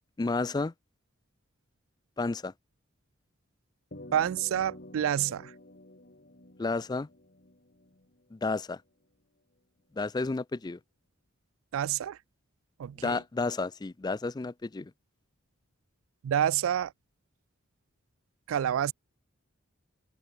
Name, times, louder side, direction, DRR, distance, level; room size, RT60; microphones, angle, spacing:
voice 1, 0.2-0.7 2.2-2.5 6.6-7.1 8.3-8.8 9.9-10.8 13.0-14.9, left 3 dB, 20° left, 0.3 m, -31 dB
sound 1, 3.9-8.5, left 1 dB, 45° left, 3.1 m, -50 dB
voice 2, 4.1-5.5 11.7-12.2 12.8-13.2 16.2-16.9 18.5-18.9, right 9 dB, 70° right, 0.3 m, -28 dB
open air
head